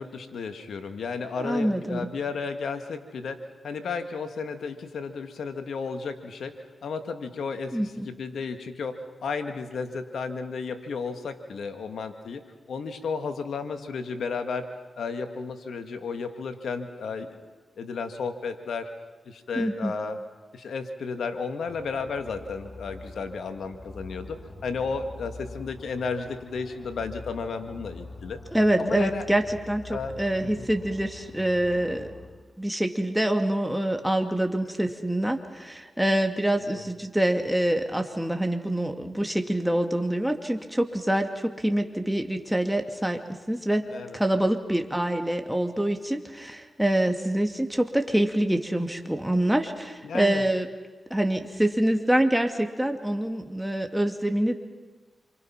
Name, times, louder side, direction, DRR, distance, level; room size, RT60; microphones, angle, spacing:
voice 1, 0.0-12.4 12.7-14.7 15.0-17.4 17.8-18.9 19.3-20.2 20.5-28.4 28.8-29.2 29.9-30.7 36.6-36.8 43.9-44.2 50.0-50.4, left 5 dB, 80° left, 7 dB, 2.0 m, -33 dB
voice 2, 1.4-2.1 7.7-8.1 19.6-19.9 28.5-32.1 32.6-43.2 43.5-43.9 44.1-50.7 51.1-54.5, right 1 dB, 5° right, 4 dB, 2.5 m, -25 dB
sound 1, 21.7-32.3, left 2 dB, 30° left, 6.4 m, -44 dB
27.5 x 24.5 x 5.9 m, 1.3 s
supercardioid pair, 45°, 0 cm